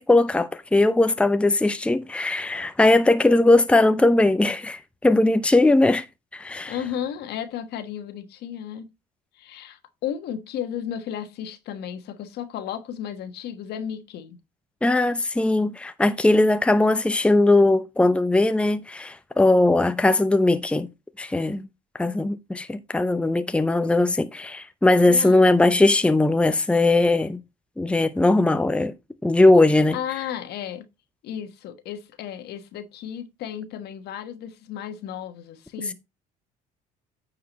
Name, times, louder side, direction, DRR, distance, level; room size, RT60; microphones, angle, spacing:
voice 1, 0.0-6.0 6.3-6.7 14.8-20.9 21.2-21.7 22.0-27.4 27.8-28.9 29.2-30.0, left 2 dB, 5° left, 0.7 m, -19 dB
voice 2, 6.7-8.9 9.4-14.4 25.1-25.5 29.9-30.8 31.2-35.9, left 9 dB, 70° left, 1.3 m, -34 dB
9.2 x 4.9 x 4.2 m
supercardioid pair, 85°, 17 cm